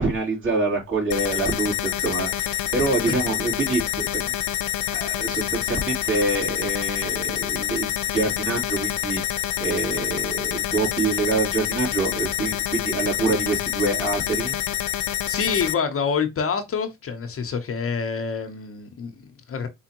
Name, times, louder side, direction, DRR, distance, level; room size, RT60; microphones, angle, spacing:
voice 1, 0.0-4.3 4.9-14.6, right 3 dB, 40° right, 3.0 m, -26 dB
sound 1, 1.1-15.7, left 12 dB, 80° left, 0.6 m, -27 dB
voice 2, 15.3-19.7, left 6 dB, 50° left, 0.9 m, -27 dB
4.4 x 3.6 x 2.9 m
cardioid pair, 90°, 30 cm